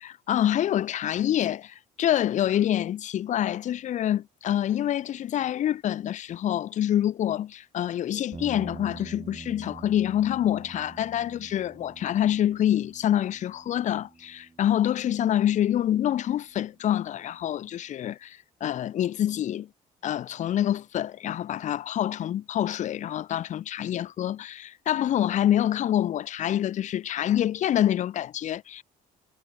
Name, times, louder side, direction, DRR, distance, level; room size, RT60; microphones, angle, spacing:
voice 1, 0.0-19.7 20.0-28.8, left 11 dB, 45° left, 0.5 m, -26 dB
sound 1, 8.3-16.7, right 4 dB, 20° right, 1.9 m, -46 dB
cardioid pair, 110°, 17 cm